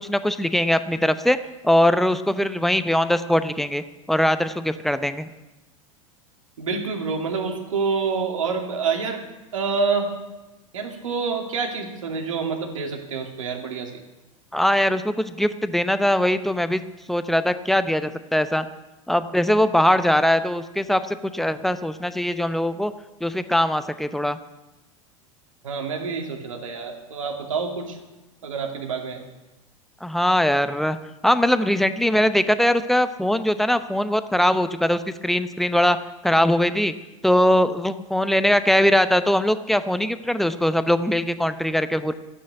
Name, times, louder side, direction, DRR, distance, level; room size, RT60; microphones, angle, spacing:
voice 1, 0.0-1.4 1.6-5.3 14.5-16.8 17.1-18.7 19.1-22.9 23.2-24.4 30.0-31.0 31.2-36.0 36.2-36.9 37.2-42.1, left 1 dB, ahead, 12 dB, 0.7 m, -21 dB
voice 2, 6.6-9.2 9.5-10.1 10.7-14.0 25.6-28.0 28.4-29.2, right 5 dB, 70° right, 3 dB, 2.4 m, -27 dB
13.0 x 8.7 x 9.3 m, 1.1 s
figure-of-eight pair, 85°, 18 cm